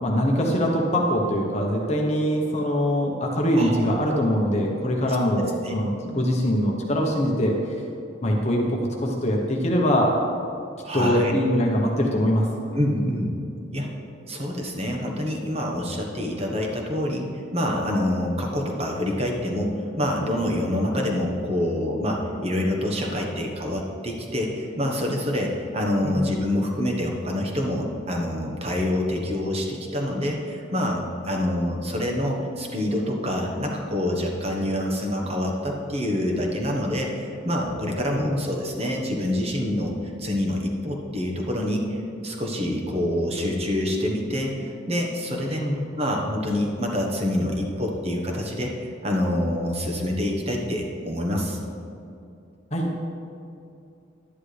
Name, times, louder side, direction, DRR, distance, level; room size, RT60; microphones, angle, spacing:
voice 1, 0.0-7.8 8.2-8.6 9.0-10.2 10.9-12.5 26.0-26.3 38.2-38.5 45.6-45.8 52.7-52.9, equal, 35° left, -1 dB, 1.0 m, -23 dB
voice 2, 3.5-3.9 5.6-5.7 10.8-11.3 12.7-13.3 13.7-13.9 14.3-42.0 42.2-45.6 46.0-51.6, left 1 dB, 30° right, 0 dB, 1.2 m, -26 dB
11.0 x 10.5 x 3.4 m, 2.6 s
head